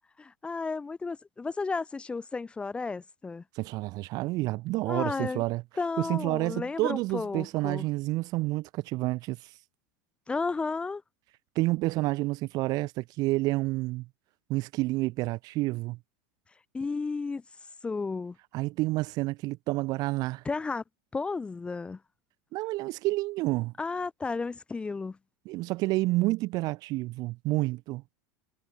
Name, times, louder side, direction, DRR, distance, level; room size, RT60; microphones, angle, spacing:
voice 1, 0.2-3.4 4.9-5.4 5.8-7.9 10.3-11.0 16.7-17.4 17.8-18.4 20.4-20.8 21.1-22.0 23.8-25.2, left 4 dB, 10° left, 1.1 m, -33 dB
voice 2, 3.5-5.6 6.0-9.5 11.5-14.1 14.5-16.0 18.5-20.4 22.5-23.7 25.4-28.0, right 20 dB, 40° right, 1.2 m, -29 dB
supercardioid pair, 150°, 10 cm